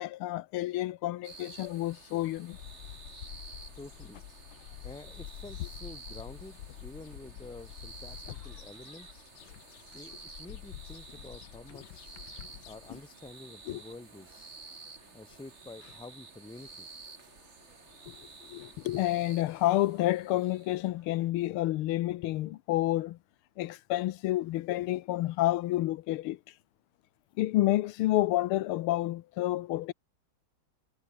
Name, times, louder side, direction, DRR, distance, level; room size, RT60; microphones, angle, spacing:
voice 1, 0.0-2.6 13.7-13.8 18.1-18.2 18.5-23.2 23.6-26.4 27.4-29.9, left 15 dB, 90° left, 1.6 m, -29 dB
sound 1, 1.2-20.9, right 4 dB, 30° right, 2.4 m, -51 dB
sound 2, 2.5-13.1, left 11 dB, 70° left, 1.8 m, -48 dB
voice 2, 3.8-4.2 4.8-9.2 9.9-12.2 12.6-14.6 15.1-16.9, left 2 dB, 5° left, 0.5 m, -49 dB
sound 3, 12.0-21.3, right 3 dB, 60° right, 6.6 m, -65 dB
omnidirectional pair, 2.3 m